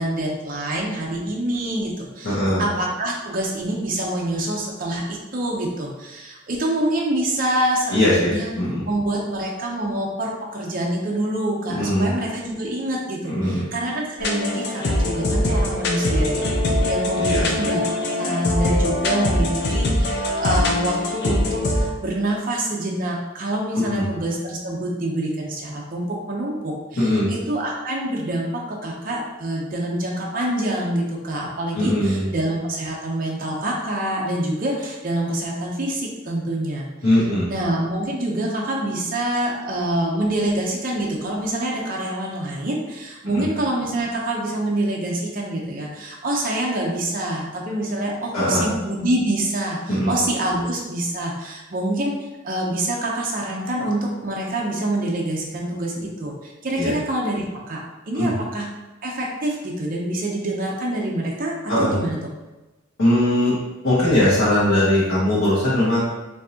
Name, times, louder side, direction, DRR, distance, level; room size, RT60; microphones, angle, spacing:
voice 1, 0.0-8.5 8.9-17.8 18.2-58.7 59.0-62.2, right 1 dB, 45° right, -2 dB, 0.7 m, -26 dB
voice 2, 2.2-2.7 7.9-8.8 11.7-12.1 13.3-13.6 17.1-17.5 23.7-24.1 27.0-27.3 31.7-32.2 37.0-37.5 43.3-43.4 48.3-48.7 49.9-50.1 56.8-56.9 58.1-58.3 61.7-61.9 63.0-63.6 63.8-66.0, left 1 dB, 80° left, -11 dB, 1.3 m, -20 dB
sound 1, 14.2-21.9, left 1 dB, 60° left, 0.6 m, -22 dB
4.6 x 2.7 x 2.8 m, 1.1 s
head